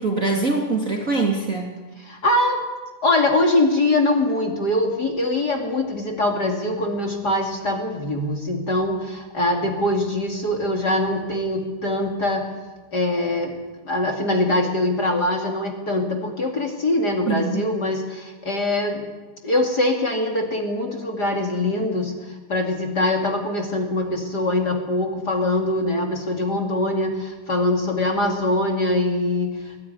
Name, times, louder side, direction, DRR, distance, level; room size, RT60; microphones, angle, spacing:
voice 1, 0.0-1.7 17.3-17.7, right 3 dB, 25° right, 1 dB, 2.4 m, -23 dB
voice 2, 2.0-2.6 3.0-12.5 12.9-13.5 13.8-19.1 19.4-29.7, left 2 dB, 35° left, 2 dB, 2.8 m, -23 dB
24.0 x 17.0 x 9.8 m, 1.3 s
omnidirectional pair, 3.6 m